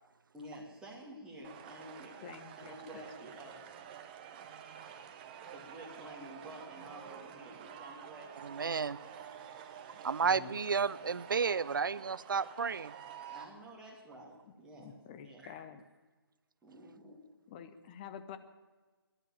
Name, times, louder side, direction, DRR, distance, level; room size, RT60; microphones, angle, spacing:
voice 1, 0.3-2.2 2.6-3.6 3.9-4.0 5.5-9.1 10.2-10.7 11.0-11.1 13.3-14.9 15.2-15.5 16.6-17.2, right 1 dB, 5° right, -4 dB, 2.4 m, -51 dB
sound 1, 1.4-13.4, right 8 dB, 20° right, 0.8 m, -49 dB
voice 2, 2.2-3.3 10.2-10.5 14.4-15.8 17.5-18.4, left 8 dB, 20° left, 10 dB, 0.7 m, -49 dB
voice 3, 8.4-9.0 10.0-12.9, right 5 dB, 55° right, 20 dB, 0.5 m, -32 dB
13.5 x 11.0 x 8.9 m, 1.3 s
figure-of-eight pair, 145°, 13 cm